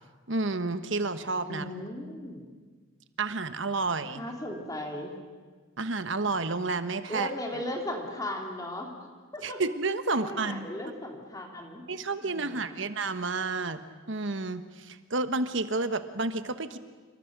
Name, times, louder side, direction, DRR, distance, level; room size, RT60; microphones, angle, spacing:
voice 1, 0.3-1.6 3.2-4.2 5.8-7.3 9.4-10.7 11.9-13.8 14.1-16.8, right 3 dB, 65° right, 11 dB, 1.3 m, -30 dB
voice 2, 1.5-2.5 4.1-5.1 7.1-8.9 9.3-9.6 10.1-11.9 12.2-12.8, left 1 dB, 15° left, 2 dB, 2.8 m, -37 dB
28.0 x 24.0 x 6.1 m, 1.5 s
head